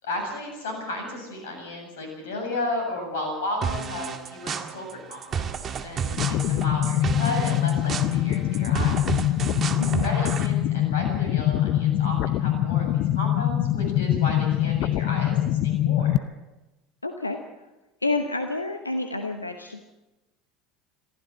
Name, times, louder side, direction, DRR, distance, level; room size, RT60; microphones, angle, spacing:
voice 1, 0.0-5.5 5.8-8.9 10.0-16.2, left 1 dB, 70° left, 3 dB, 7.8 m, -33 dB
sound 1, 3.6-10.5, right 6 dB, 35° right, 1.8 m, -32 dB
sound 2, 6.2-16.2, left 12 dB, 55° left, 0.7 m, -24 dB
voice 2, 17.0-17.4 18.0-19.8, left 2 dB, 90° left, 6 dB, 1.0 m, -29 dB
22.5 x 15.0 x 7.9 m, 1.1 s
figure-of-eight pair, 70°, 0 cm